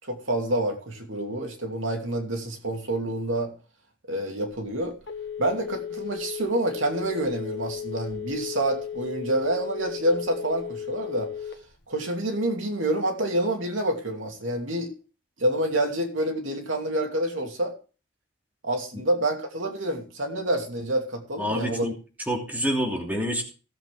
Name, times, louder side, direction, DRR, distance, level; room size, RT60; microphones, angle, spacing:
voice 1, 0.0-3.5 4.1-5.0 5.4-11.3 11.9-14.9 15.4-17.7 18.6-21.9, right 1 dB, 85° right, 3 dB, 2.8 m, -27 dB
Telephone, 4.5-11.9, left 8 dB, 65° left, 1.2 m, -35 dB
voice 2, 21.4-21.9 22.3-23.4, equal, 10° right, 0 dB, 2.8 m, -27 dB
16.5 x 8.0 x 3.6 m, 0.35 s
head